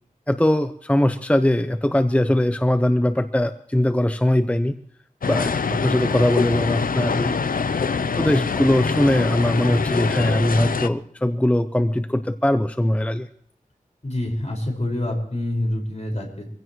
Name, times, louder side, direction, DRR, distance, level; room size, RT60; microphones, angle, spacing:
voice 1, 0.3-4.8 5.3-7.4 8.2-13.3, left 1 dB, 10° left, 10 dB, 0.6 m, -21 dB
sound 1, 5.2-10.9, left 5 dB, 90° left, 0.6 m, -24 dB
voice 2, 14.0-16.5, left 1 dB, 55° left, -1 dB, 5.3 m, -26 dB
24.5 x 15.5 x 3.1 m, 0.65 s
wide cardioid pair, 65°, 14 cm